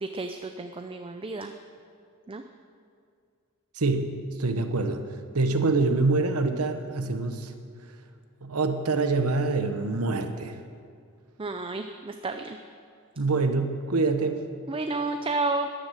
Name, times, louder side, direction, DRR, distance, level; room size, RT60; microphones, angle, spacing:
voice 1, 0.0-1.5 2.3-2.4 11.4-12.6 14.7-15.7, right 3 dB, 25° right, 6 dB, 0.5 m, -31 dB
voice 2, 3.7-7.5 8.4-10.6 13.2-14.4, right 3 dB, 85° right, 7 dB, 1.1 m, -26 dB
14.0 x 10.5 x 6.6 m, 2.3 s
head